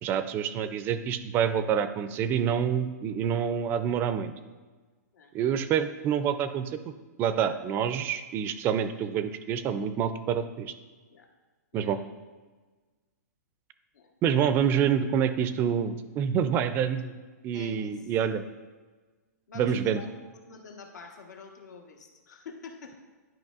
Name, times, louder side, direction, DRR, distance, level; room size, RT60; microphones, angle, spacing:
voice 1, 0.0-4.3 5.3-6.9 7.2-10.7 11.7-12.0 14.2-17.1 17.4-18.4 19.6-20.0, right 8 dB, 25° right, 11 dB, 0.3 m, -27 dB
voice 2, 5.1-5.6 11.1-11.3 11.7-11.9 13.9-14.1 17.5-18.0 19.5-20.1 20.5-22.9, left 5 dB, 85° left, 3 dB, 1.2 m, -47 dB
10.5 x 5.2 x 2.4 m, 1.3 s
hypercardioid pair, 145°, 9 cm